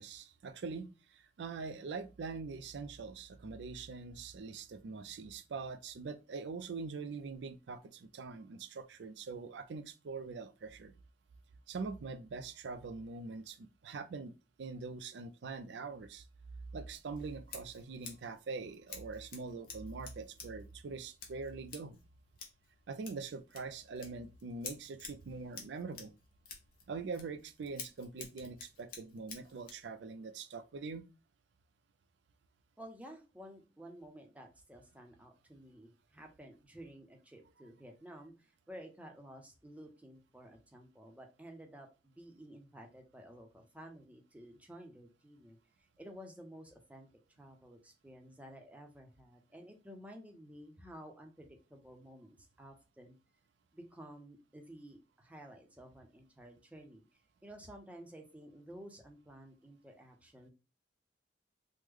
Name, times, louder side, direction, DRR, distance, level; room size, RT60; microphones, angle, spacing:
voice 1, 0.0-10.9 11.7-14.3 14.6-16.2 16.7-22.0 22.9-26.1 26.9-31.1, right 4 dB, 70° right, 0.4 m, -43 dB
Scissors, 16.9-29.9, left 5 dB, 55° left, 0.9 m, -52 dB
voice 2, 32.8-45.6 46.0-47.1 47.4-53.2 53.7-57.0 57.4-60.5, equal, 10° right, 0.6 m, -53 dB
3.1 x 2.1 x 3.5 m
head